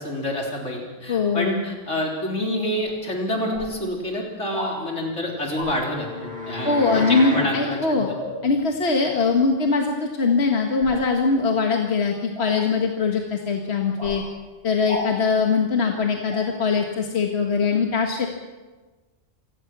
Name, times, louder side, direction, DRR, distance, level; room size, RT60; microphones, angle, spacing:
voice 1, 0.0-8.1, left 1 dB, 80° left, 0 dB, 4.2 m, -28 dB
voice 2, 1.1-1.6 6.6-8.1 8.4-14.2 14.6-18.3, left 4 dB, 60° left, 2 dB, 1.9 m, -22 dB
Swinging a Large Knife or Sword, 2.8-2.9 3.5-3.7 4.5-4.7 5.5-5.7 8.2-8.4 10.8-11.0 12.3-12.6 14.0-14.2 14.9-15.1 16.3-16.4, equal, 60° right, 7.6 m, -32 dB
sound 1, 4.9-7.5, left 2 dB, 5° right, 6.6 m, -32 dB
27.5 x 16.5 x 6.1 m, 1.3 s
omnidirectional pair, 1.2 m